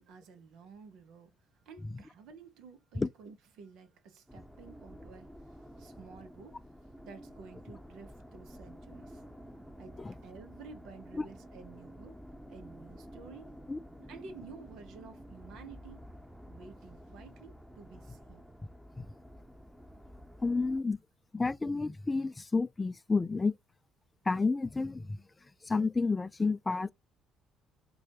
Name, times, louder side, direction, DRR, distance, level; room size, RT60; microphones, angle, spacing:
voice 1, 0.0-9.2 9.8-12.2 12.5-13.6 14.0-16.1 16.5-18.5, right 5 dB, 70° right, 0.8 m, -52 dB
sound 1, 4.3-20.8, equal, 5° right, 0.9 m, -51 dB
voice 2, 20.4-21.0 21.3-23.6 24.3-25.2 25.6-26.9, left 3 dB, 25° left, 0.4 m, -30 dB
4.2 x 2.3 x 2.9 m
hypercardioid pair, 50°, 0 cm